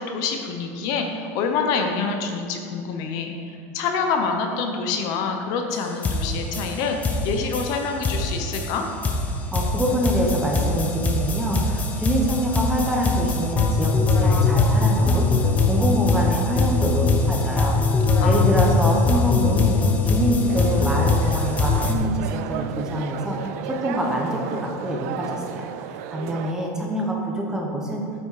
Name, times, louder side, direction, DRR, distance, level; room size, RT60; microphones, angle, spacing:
voice 1, 0.0-3.3 3.7-8.8 18.2-18.8, left 5 dB, 50° left, 4 dB, 0.9 m, -26 dB
sound 1, 5.7-5.8 6.0-21.9, left 3 dB, 20° left, 0.7 m, -21 dB
voice 2, 9.5-17.8 18.2-19.8 20.0-23.4 23.7-28.0, equal, 5° right, -1 dB, 0.9 m, -25 dB
sound 2, 20.5-26.5, right 10 dB, 65° right, 0.4 m, -34 dB
8.8 x 6.1 x 4.9 m, 2.6 s
supercardioid pair, 165°, 9 cm